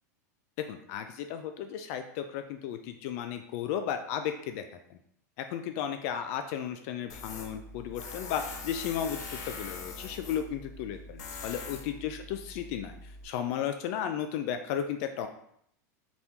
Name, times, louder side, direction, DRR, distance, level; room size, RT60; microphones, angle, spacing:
voice 1, 0.6-4.6 4.9-5.0 5.4-15.3, left 9 dB, 55° left, 7 dB, 0.4 m, -34 dB
Tools, 7.1-13.2, left 4 dB, 75° left, 0.8 m, -43 dB
4.0 x 3.5 x 2.9 m, 0.70 s
hypercardioid pair, 120°, 10 cm